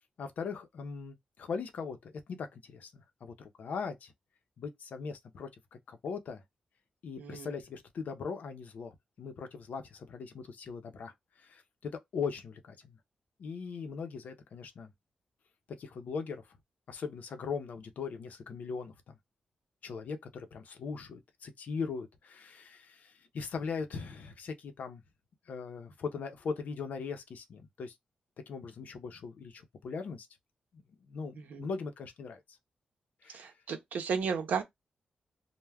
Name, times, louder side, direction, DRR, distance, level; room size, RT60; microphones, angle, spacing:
voice 1, 0.2-4.1 4.6-5.5 5.9-6.4 7.0-13.0 13.4-14.9 15.8-16.4 16.9-19.2 19.8-25.0 25.5-27.9 28.5-30.3 30.7-32.4 33.2-33.5, left 5 dB, 75° left, 0.6 m, -40 dB
voice 2, 7.2-7.5 31.4-31.7 33.3-34.6, right 6 dB, 85° right, 0.6 m, -34 dB
2.2 x 2.1 x 3.3 m
cardioid pair, 85°, 3 cm